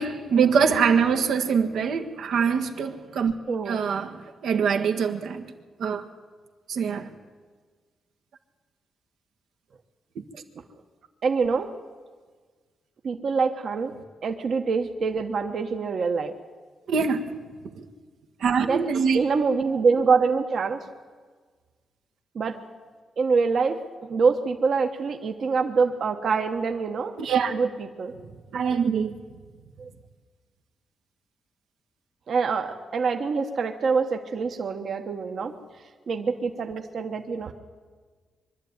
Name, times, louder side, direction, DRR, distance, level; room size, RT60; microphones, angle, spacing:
voice 1, 0.0-3.3 3.7-5.5 5.8-6.0 6.7-7.1 10.1-10.4 16.9-17.3 17.7-17.8 18.4-19.2 27.2-27.5 28.5-29.1, right 6 dB, 85° right, 5 dB, 1.5 m, -24 dB
voice 2, 3.5-3.8 11.2-11.7 13.0-13.9 14.2-16.3 18.6-18.9 19.1-20.8 22.3-22.6 23.2-27.1 27.5-28.1 29.8-29.9 32.3-35.5 36.1-37.5, right 5 dB, 50° right, 5 dB, 1.1 m, -25 dB
23.5 x 12.0 x 9.5 m, 1.5 s
wide cardioid pair, 175°, 0 cm